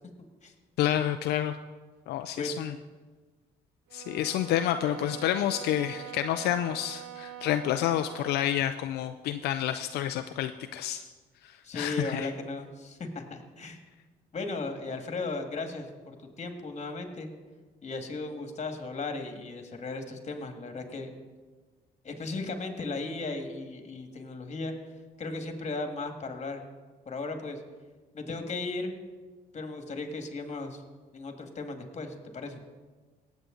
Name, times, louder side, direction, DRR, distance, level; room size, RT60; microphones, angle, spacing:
voice 1, 0.8-1.6 2.1-2.7 3.9-11.0 11.4-12.3, left 11 dB, 80° left, 8 dB, 0.5 m, -29 dB
sound 1, 3.9-8.6, right 11 dB, 85° right, 1.1 m, -43 dB
voice 2, 11.6-13.8 14.3-17.3 17.8-21.1 22.0-24.7 25.2-26.6 27.1-27.6 28.1-28.9 29.5-30.8 31.1-32.6, left 3 dB, 40° left, 5 dB, 1.9 m, -36 dB
18.5 x 8.2 x 3.9 m, 1.4 s
supercardioid pair, 75°, 17 cm